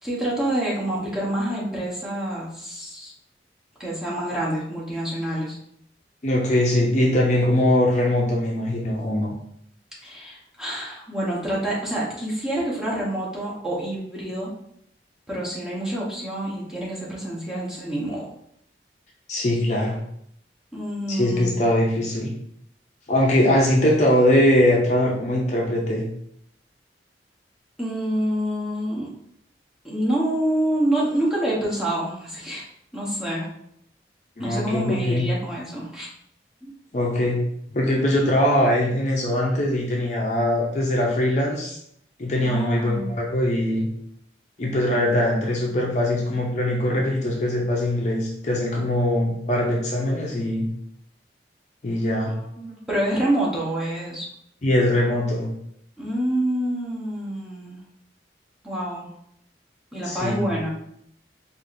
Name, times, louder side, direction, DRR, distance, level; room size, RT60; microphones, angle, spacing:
voice 1, 0.0-3.1 3.8-5.6 10.0-14.5 15.3-18.3 20.7-21.5 27.8-29.1 29.8-32.6 32.9-33.5 34.4-36.1 36.6-36.7 42.4-43.1 52.3-54.3 56.0-57.8 58.6-59.1 59.9-60.7, right 1 dB, 5° right, -7 dB, 0.9 m, -27 dB
voice 2, 6.2-9.3 19.3-20.0 21.1-22.3 23.1-26.1 34.4-35.3 36.9-37.4 37.7-41.8 42.2-43.9 44.6-50.7 51.8-52.3 54.6-55.5 60.0-60.4, left 1 dB, 40° left, -2 dB, 0.5 m, -21 dB
4.7 x 2.5 x 2.6 m, 0.72 s
head